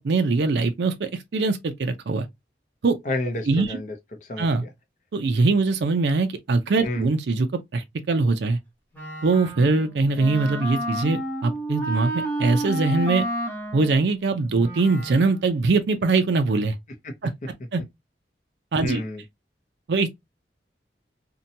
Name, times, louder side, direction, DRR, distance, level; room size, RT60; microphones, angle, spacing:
voice 1, 0.0-2.3 2.8-3.0 3.5-3.8 4.4-4.6 5.1-7.5 7.7-8.6 9.2-13.2 13.7-16.8 17.2-17.8 18.7-19.0 19.9-20.1, right 3 dB, 75° right, 0.4 m, -22 dB
voice 2, 3.0-3.9 4.2-4.7 6.8-7.1 17.0-17.1 18.8-19.2, left 2 dB, 45° left, 0.6 m, -30 dB
Wind instrument woodwind instrument, 8.9-15.5, right 1 dB, 10° left, 0.8 m, -31 dB
2.7 x 2.2 x 2.6 m
head